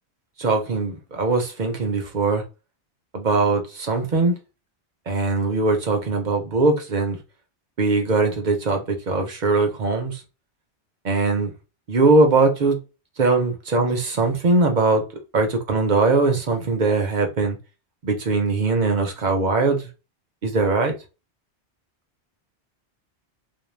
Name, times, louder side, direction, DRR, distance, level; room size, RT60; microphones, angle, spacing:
voice 1, 0.4-2.4 3.1-4.3 5.1-7.2 7.8-10.2 11.0-11.5 11.9-12.8 13.2-15.0 15.3-17.6 18.0-19.9 20.4-21.0, right 3 dB, 50° right, 0.7 m, -21 dB
2.5 x 2.0 x 3.1 m
omnidirectional pair, 1.1 m